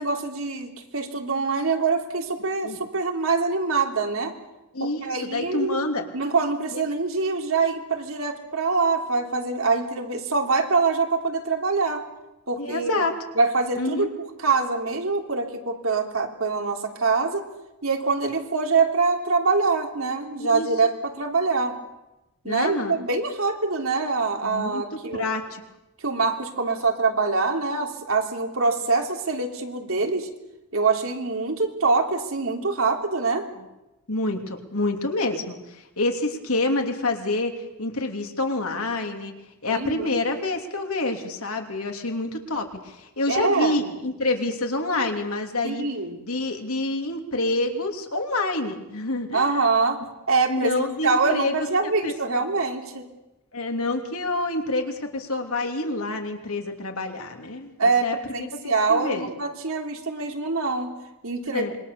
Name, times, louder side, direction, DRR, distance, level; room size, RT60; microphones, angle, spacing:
voice 1, 0.0-4.3 4.8-5.8 6.1-12.0 12.5-13.0 13.3-14.1 14.4-17.4 17.8-21.8 22.4-25.4 26.0-30.3 30.7-33.5 39.7-40.1 43.3-43.8 45.6-46.2 49.3-50.0 50.3-53.0 57.8-60.9 61.2-61.7, right 4 dB, 65° right, 3 dB, 3.3 m, -24 dB
voice 2, 4.7-6.0 6.7-6.8 12.6-13.1 13.8-14.1 20.4-20.7 22.4-22.9 24.4-25.6 34.1-37.5 37.8-39.3 39.6-45.8 46.2-49.4 50.5-51.6 51.8-52.1 53.5-58.2 58.5-59.3 61.4-61.7, left 2 dB, 75° left, 4 dB, 3.0 m, -27 dB
26.5 x 23.0 x 6.9 m, 0.96 s
head